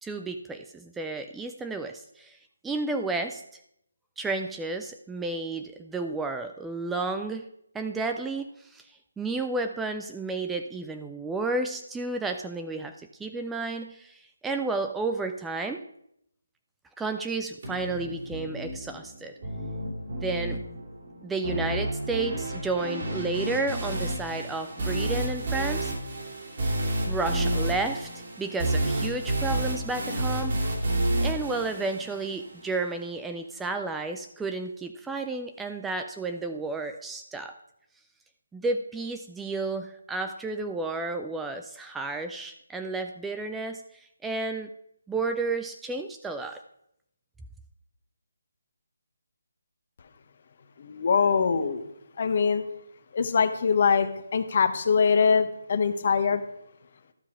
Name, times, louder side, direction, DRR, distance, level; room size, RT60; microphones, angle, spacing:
voice 1, 0.0-2.4 2.6-3.6 4.2-7.5 7.7-12.9 13.2-15.8 17.0-19.3 20.1-20.6 21.2-25.9 27.0-28.1 28.4-30.8 31.2-37.6 38.5-44.7 45.1-46.6, right 3 dB, 5° right, 6 dB, 0.4 m, -32 dB
sound 1, 17.6-32.6, right 1 dB, 50° right, 3.1 m, -30 dB
voice 2, 50.8-51.8 52.2-52.6 53.1-56.4, left 6 dB, 45° left, 10 dB, 0.9 m, -23 dB
12.5 x 5.6 x 4.8 m, 0.76 s
figure-of-eight pair, 155°, 0 cm